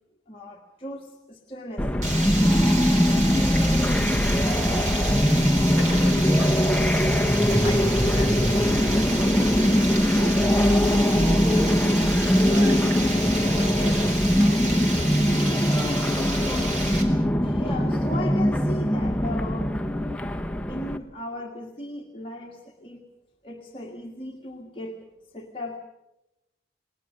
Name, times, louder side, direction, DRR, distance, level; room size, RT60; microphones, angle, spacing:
voice 1, 0.3-1.9 16.5-19.8 20.7-23.1 23.4-25.1 25.3-25.8, left 1 dB, 30° left, -1 dB, 1.6 m, -38 dB
sound 1, 1.8-21.0, equal, 5° left, 0.9 m, -21 dB
Water, 2.0-17.0, right 2 dB, 40° right, 4.0 m, -32 dB
voice 2, 4.5-5.2 5.6-6.6 7.5-7.9 8.1-11.2 12.5-12.8 13.1-13.3 13.5-14.0 14.3-15.3, right 1 dB, 20° right, 4 dB, 3.3 m, -39 dB
28.5 x 19.5 x 6.5 m, 0.93 s
head